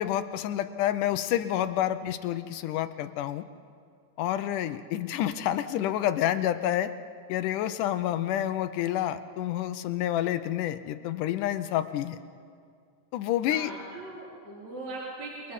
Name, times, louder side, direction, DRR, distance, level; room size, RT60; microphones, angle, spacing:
voice 1, 0.0-3.4 4.2-6.9 7.3-12.2 13.1-13.7, left 12 dB, 85° left, 11 dB, 2.3 m, -28 dB
voice 2, 13.5-15.5, right 2 dB, 60° right, -6 dB, 5.3 m, -40 dB
29.0 x 21.0 x 5.5 m, 2.2 s
omnidirectional pair, 3.6 m